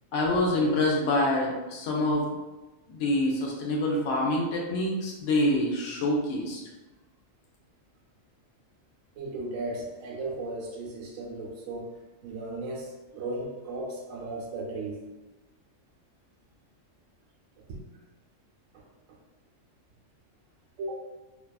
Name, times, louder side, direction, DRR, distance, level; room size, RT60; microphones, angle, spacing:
voice 1, 0.1-2.3 2.9-6.6, left 1 dB, 70° left, -2 dB, 0.9 m, -26 dB
voice 2, 9.2-11.9 12.2-15.0 17.7-17.8 18.7-18.8 20.8-20.9, right 2 dB, 85° right, -2 dB, 1.0 m, -36 dB
2.7 x 2.3 x 2.2 m, 1.1 s
omnidirectional pair, 1.3 m